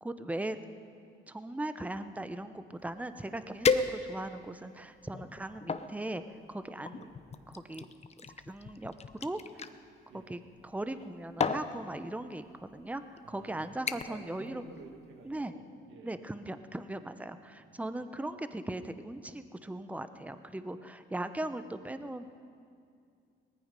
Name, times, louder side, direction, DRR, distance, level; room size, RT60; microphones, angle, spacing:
voice 1, 0.0-0.6 1.3-7.0 7.5-7.9 8.5-9.7 10.1-14.6 15.2-15.5 16.0-22.3, right 1 dB, 5° right, 11 dB, 0.7 m, -39 dB
sound 1, 3.0-3.1 3.6-4.4 5.0-5.9 6.8-9.7 10.8-11.1 11.4-11.7 12.6-12.7 13.2-13.4 13.9-14.3 14.6-14.9 15.3-15.4, left 5 dB, 30° left, 0.7 m, -33 dB
voice 2, 13.2-16.1 17.6-17.7 18.0-18.1, right 4 dB, 85° right, 4 dB, 1.9 m, -53 dB
19.0 x 14.5 x 5.3 m, 2.3 s
cardioid pair, 90°, 20 cm